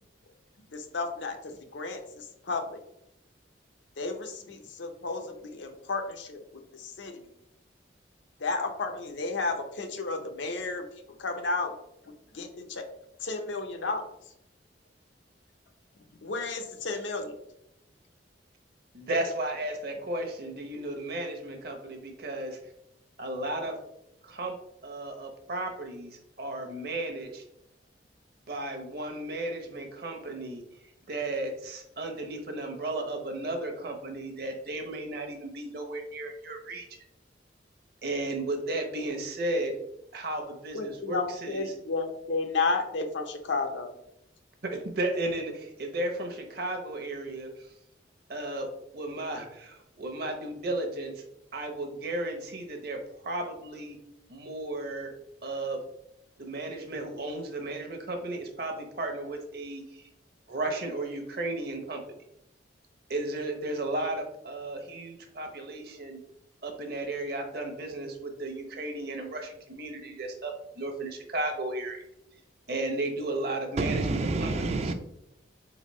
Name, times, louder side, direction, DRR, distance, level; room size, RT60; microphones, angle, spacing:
voice 1, 0.7-2.8 4.0-7.3 8.4-10.9 11.2-11.7 12.0-12.9 13.2-14.1 16.2-17.4 40.7-43.9, left 3 dB, 80° left, 0.7 m, -32 dB
voice 2, 18.9-22.6 23.2-23.7 24.2-24.5 24.8-27.4 28.5-30.6 31.1-36.9 38.0-39.7 40.1-41.6 44.6-47.7 48.3-48.7 48.9-51.2 51.5-54.0 54.3-55.1 55.4-55.8 56.4-60.1 60.5-62.0 63.1-66.2 66.6-72.0 72.7-74.5 74.8-74.9, right 2 dB, 55° right, 0.9 m, -34 dB
voice 3, 73.8-74.9, right 3 dB, 35° right, 0.3 m, -28 dB
4.0 x 3.9 x 3.1 m
head